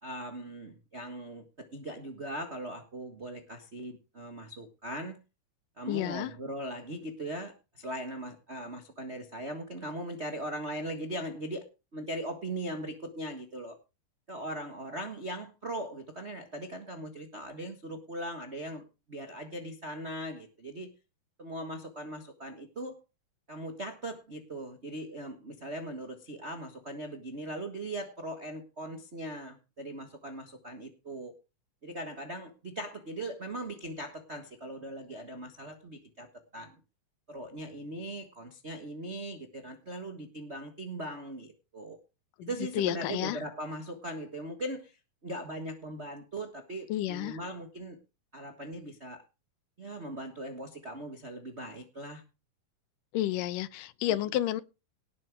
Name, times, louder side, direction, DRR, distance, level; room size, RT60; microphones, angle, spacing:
voice 1, 0.0-5.2 5.8-13.8 14.3-20.9 21.4-23.0 23.5-31.3 31.8-36.8 37.3-42.0 42.4-48.0 48.3-49.2 49.8-52.2 54.1-54.2, right 1 dB, 50° right, 0.8 m, -40 dB
voice 2, 5.9-6.3 42.4-42.5 42.7-43.4 46.9-47.4 53.1-54.6, left 13 dB, 80° left, 2.5 m, -31 dB
18.0 x 7.5 x 4.8 m
omnidirectional pair, 3.8 m